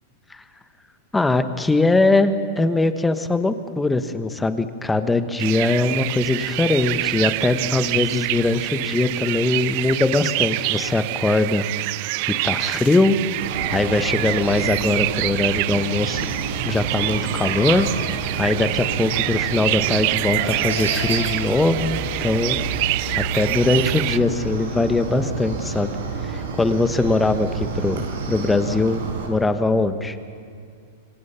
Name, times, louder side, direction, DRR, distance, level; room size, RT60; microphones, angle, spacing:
voice 1, 1.1-11.6 12.3-13.2 13.7-16.3 16.6-17.9 18.4-22.6 23.2-25.9 26.3-30.2, left 2 dB, 10° left, 10 dB, 1.3 m, -21 dB
sound 1, 5.4-24.2, right 21 dB, 50° right, 0.5 m, -26 dB
Chicken rooster, 13.4-29.3, right 4 dB, 80° right, 6.3 m, -29 dB
27.0 x 24.5 x 5.8 m, 2.3 s
hypercardioid pair, 135°, 0 cm